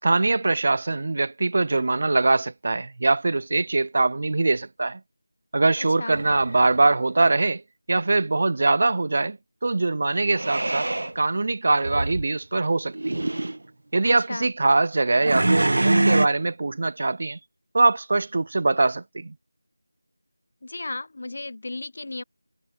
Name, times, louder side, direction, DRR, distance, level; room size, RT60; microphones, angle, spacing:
voice 1, 0.0-5.0 5.5-7.6 7.9-10.9 11.1-13.2 13.9-17.4 17.7-19.3, right 3 dB, 30° right, 4.3 m, -22 dB
sound 1, 6.1-7.0 10.3-11.1 11.8-12.3 12.9-13.6 15.2-16.3, right 2 dB, 50° right, 7.3 m, -24 dB
voice 2, 14.0-14.5 20.6-22.2, left 2 dB, 35° left, 5.9 m, -34 dB
figure-of-eight pair, 180°, 0 cm